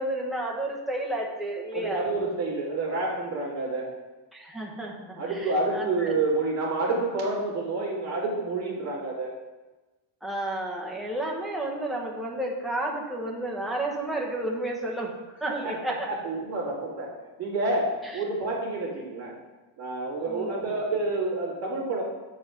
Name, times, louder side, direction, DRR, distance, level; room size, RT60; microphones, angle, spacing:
voice 1, 0.0-2.0 4.3-6.1 10.2-15.1 15.4-16.1 20.3-20.5, right 1 dB, ahead, -3 dB, 0.9 m, -31 dB
voice 2, 1.7-3.9 5.2-9.3 15.5-17.1 17.4-19.3 19.8-22.0, right 2 dB, 35° right, -6 dB, 2.4 m, -29 dB
7.6 x 4.8 x 4.9 m, 1.2 s
cardioid pair, 165°, 48 cm